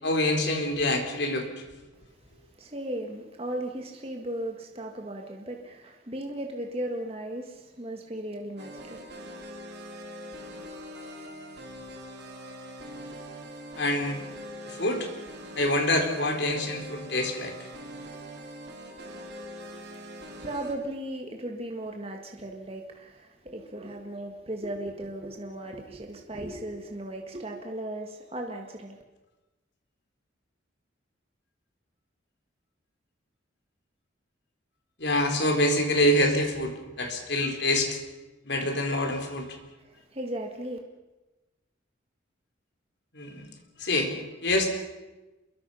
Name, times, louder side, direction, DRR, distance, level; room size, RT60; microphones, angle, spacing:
voice 1, 0.0-1.5 13.8-14.2 14.7-15.1 15.6-17.5 35.0-38.0 38.5-39.5 43.1-43.4 43.8-44.1 44.4-44.7, left 1 dB, 60° left, 4.2 m, -26 dB
voice 2, 2.4-9.0 19.6-29.0 39.8-40.8, right 1 dB, 30° right, 1.9 m, -37 dB
sound 1, 8.6-20.7, equal, 55° right, 3.6 m, -42 dB
27.0 x 23.0 x 5.7 m
head